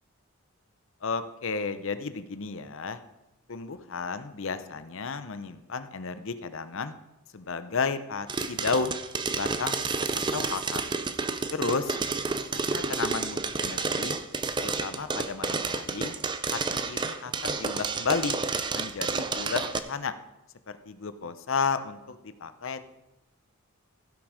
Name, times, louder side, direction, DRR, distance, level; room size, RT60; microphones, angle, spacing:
voice 1, 1.0-3.0 3.5-6.9 7.3-9.0 9.3-9.8 10.3-10.8 11.5-12.0 12.7-14.2 14.6-16.1 16.5-18.4 18.7-20.1 20.7-22.8, left 4 dB, 60° left, 11 dB, 0.7 m, -32 dB
sound 1, 8.3-19.8, right 4 dB, 20° right, 0.4 m, -30 dB
16.0 x 6.1 x 5.0 m, 0.95 s
head